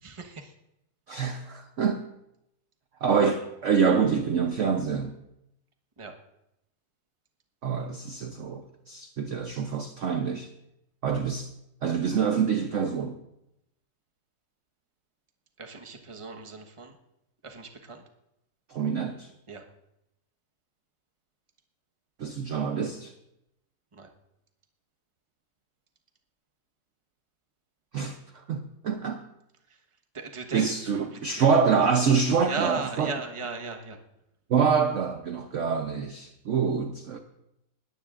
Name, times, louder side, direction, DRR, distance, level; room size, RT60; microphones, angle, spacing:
voice 1, 0.0-0.5 6.0-6.1 15.6-16.9 17.4-18.0 19.5-19.6 23.9-24.1 30.1-31.5 32.4-34.0, right 4 dB, 20° right, 3 dB, 1.0 m, -37 dB
voice 2, 1.1-2.0 3.0-5.1 7.6-10.5 11.0-11.5 11.8-13.2 18.7-19.3 22.2-23.1 27.9-29.2 30.5-33.2 34.5-37.2, right 6 dB, 55° right, 6 dB, 0.9 m, -26 dB
20.0 x 14.0 x 2.5 m, 0.85 s
omnidirectional pair, 1.9 m